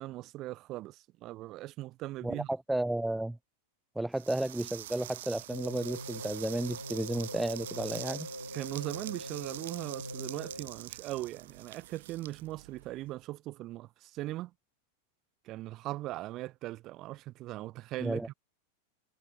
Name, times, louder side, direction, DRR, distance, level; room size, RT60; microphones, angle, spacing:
voice 1, 0.0-2.5 8.5-14.5 15.4-18.3, right 16 dB, 35° right, 2.7 m, -39 dB
voice 2, 2.2-3.4 4.0-8.3 18.0-18.3, right 1 dB, 5° right, 0.6 m, -33 dB
sound 1, 4.1-13.1, right 14 dB, 55° right, 0.7 m, -45 dB
sound 2, 5.5-10.9, equal, 90° right, 2.4 m, -43 dB
figure-of-eight pair, 90°, 0 cm